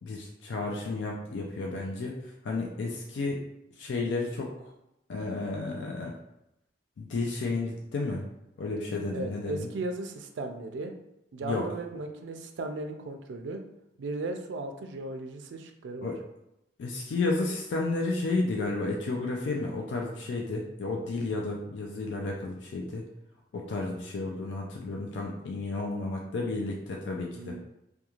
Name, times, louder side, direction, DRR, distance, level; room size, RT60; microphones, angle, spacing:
voice 1, 0.0-3.4 3.8-4.5 5.1-6.1 7.0-8.3 8.6-9.7 11.4-11.6 16.0-16.2 16.8-23.0 23.5-27.6, left 3 dB, 75° left, -1 dB, 0.3 m, -32 dB
voice 2, 9.1-10.9 11.3-13.6 14.0-16.1 27.3-27.6, right 2 dB, 75° right, 6 dB, 0.3 m, -36 dB
2.4 x 2.2 x 2.9 m, 0.85 s
head